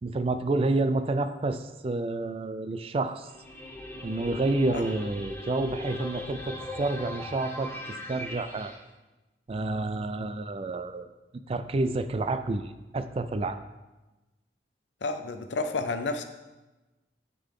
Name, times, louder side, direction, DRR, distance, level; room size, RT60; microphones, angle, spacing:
voice 1, 0.0-3.3 4.0-8.7 9.5-11.1 11.5-13.6, right 2 dB, 35° right, 10 dB, 0.3 m, -29 dB
sound 1, 3.3-8.8, left 1 dB, 10° left, 0.7 m, -39 dB
voice 2, 15.0-16.2, left 3 dB, 85° left, 8 dB, 0.6 m, -30 dB
10.0 x 3.8 x 3.7 m, 1.1 s
head